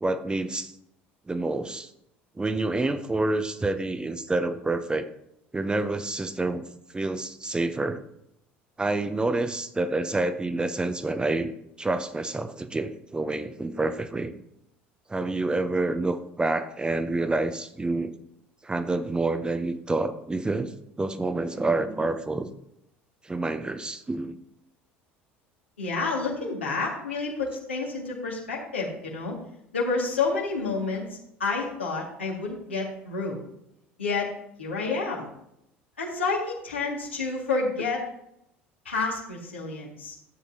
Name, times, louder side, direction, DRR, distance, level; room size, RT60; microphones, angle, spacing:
voice 1, 0.0-0.7 1.3-1.9 2.4-5.1 5.5-6.6 6.9-8.0 8.8-11.5 11.8-14.3 15.1-18.1 18.6-20.7 21.0-22.5 23.2-24.4, right 2 dB, 15° right, 10 dB, 0.7 m, -28 dB
voice 2, 25.8-29.4 29.7-33.4 34.0-34.3 34.6-35.3 36.0-38.0 38.9-40.2, left 4 dB, 80° left, -3 dB, 2.1 m, -29 dB
12.5 x 8.4 x 2.8 m, 0.77 s
figure-of-eight pair, 65°, 6 cm